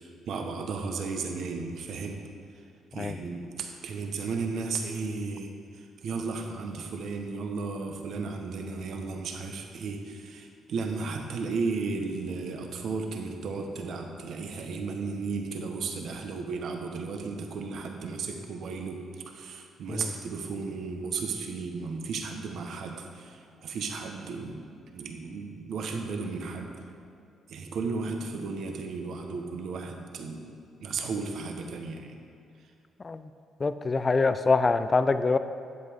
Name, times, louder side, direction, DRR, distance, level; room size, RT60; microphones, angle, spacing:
voice 1, 0.0-2.2 2.5-2.6 2.9-19.0 19.2-26.7 27.5-30.5 30.8-32.2, right 4 dB, 70° right, 3 dB, 1.2 m, -34 dB
voice 2, 33.6-35.4, left 3 dB, 30° left, 11 dB, 0.4 m, -24 dB
11.0 x 8.2 x 5.1 m, 2.4 s
cardioid pair, 90°, 0 cm